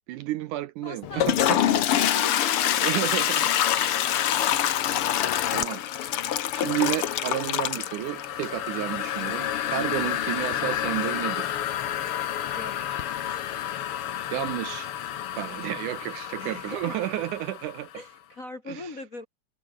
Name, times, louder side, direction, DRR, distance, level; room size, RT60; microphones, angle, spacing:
voice 1, 0.1-1.6 2.8-3.5 4.1-4.5 5.5-6.2 6.5-11.6 14.3-14.9 15.4-17.9 18.7-19.0, right 15 dB, 75° right, 2.0 m, -31 dB
voice 2, 0.8-2.9 12.5-12.9 16.4-16.9 17.9-19.3, left 2 dB, 35° left, 1.5 m, -40 dB
Toilet flush, 1.0-17.8, left 11 dB, 65° left, 1.4 m, -27 dB
omnidirectional pair, 4.1 m